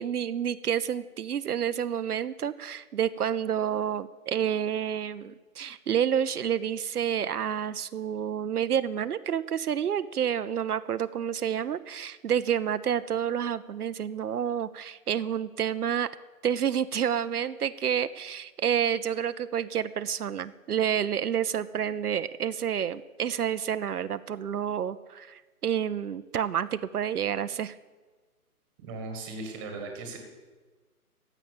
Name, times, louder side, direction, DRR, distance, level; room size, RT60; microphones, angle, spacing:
voice 1, 0.0-16.1 16.4-27.8, right 9 dB, 80° right, 12 dB, 0.7 m, -29 dB
voice 2, 28.8-30.2, right 3 dB, 15° right, 4 dB, 1.4 m, -37 dB
15.0 x 5.9 x 9.0 m, 1.3 s
hypercardioid pair, 160°, 45 cm